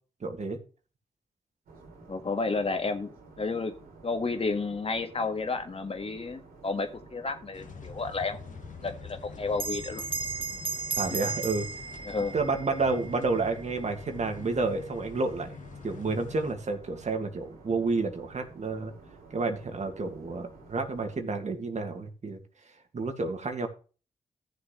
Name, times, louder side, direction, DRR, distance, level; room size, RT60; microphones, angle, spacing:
voice 1, 0.2-0.6 11.0-11.7 12.3-15.6 15.8-18.9 19.3-22.4 22.9-23.7, right 3 dB, 50° right, 5 dB, 2.2 m, -30 dB
sound 1, 1.7-21.2, right 3 dB, 80° right, 3.8 m, -51 dB
voice 2, 2.1-3.1 3.4-3.7 4.0-8.4 8.8-10.0 12.0-12.4, left 3 dB, 40° left, 7 dB, 1.8 m, -31 dB
sound 2, 7.5-16.5, left 6 dB, 60° left, 1.7 m, -45 dB
Bell, 9.5-14.4, right 4 dB, 35° right, 1.4 m, -36 dB
14.0 x 6.8 x 3.3 m, 0.36 s
supercardioid pair, 50°, 15 cm